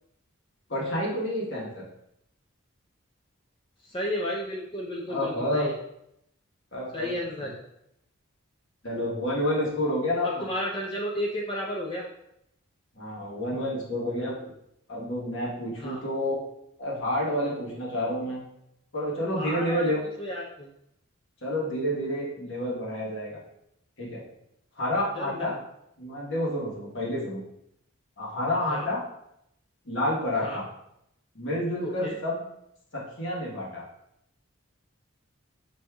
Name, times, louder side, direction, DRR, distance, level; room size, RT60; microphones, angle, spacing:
voice 1, 0.7-1.8 5.1-5.7 6.7-7.1 8.8-10.5 12.9-14.5 14.9-16.4 16.8-18.4 18.9-20.0 21.4-23.4 24.0-24.2 24.8-25.5 26.0-27.4 28.2-29.0 29.8-30.7 31.3-32.4 32.9-33.8, left 1 dB, 60° left, -4 dB, 1.2 m, -29 dB
voice 2, 3.8-5.8 6.9-7.6 10.2-12.1 15.8-16.0 19.4-19.9 20.2-20.7 25.1-25.6 28.7-28.9 30.4-30.6 31.8-32.2, left 1 dB, 25° left, -3 dB, 0.4 m, -32 dB
6.1 x 2.6 x 2.3 m, 0.78 s
head